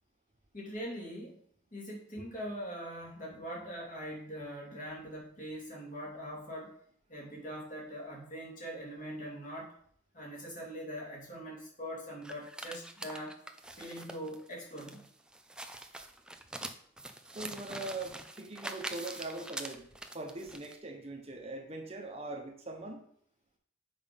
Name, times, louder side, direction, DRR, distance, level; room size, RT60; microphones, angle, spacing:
voice 1, 0.5-1.4 1.7-6.7 7.1-9.7 10.1-13.4 13.8-15.1, equal, 40° left, -3 dB, 2.7 m, -42 dB
sound 1, 12.2-20.8, right 1 dB, 5° right, 0.4 m, -44 dB
voice 2, 17.3-23.0, right 2 dB, 30° right, 2 dB, 1.1 m, -42 dB
7.3 x 5.4 x 5.3 m, 0.62 s
head